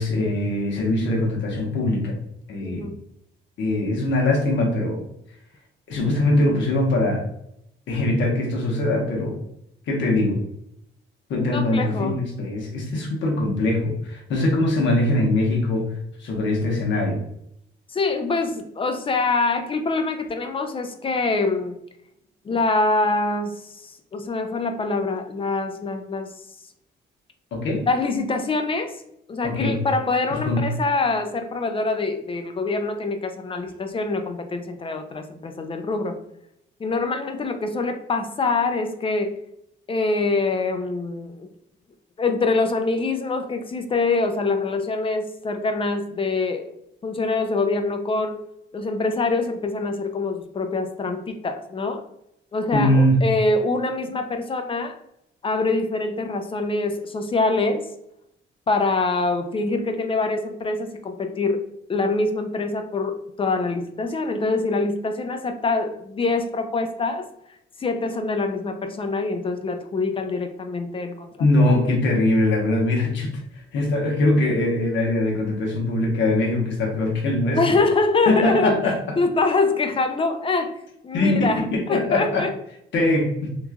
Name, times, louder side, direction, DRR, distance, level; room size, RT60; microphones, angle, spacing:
voice 1, 0.0-2.2 2.5-2.9 3.6-5.0 5.9-7.3 7.9-9.4 9.9-10.4 11.3-15.8 16.2-17.2 27.5-27.8 29.4-29.8 30.3-30.7 52.7-53.2 71.4-77.8 78.3-79.2 81.1-82.5 82.9-83.6, left 1 dB, 70° left, -1 dB, 1.0 m, -22 dB
voice 2, 2.6-3.0 11.5-12.2 17.9-21.8 22.4-26.3 27.9-29.0 29.3-36.2 36.8-39.4 39.9-41.5 42.2-46.7 47.0-48.4 48.7-52.0 52.5-55.0 55.4-57.9 58.7-61.6 61.9-67.3 67.8-71.8 77.6-78.8 79.2-80.8 81.0-81.6 81.9-82.5, left 3 dB, 25° left, 6 dB, 0.4 m, -24 dB
3.0 x 2.3 x 2.2 m, 0.78 s
cardioid pair, 90°, 20 cm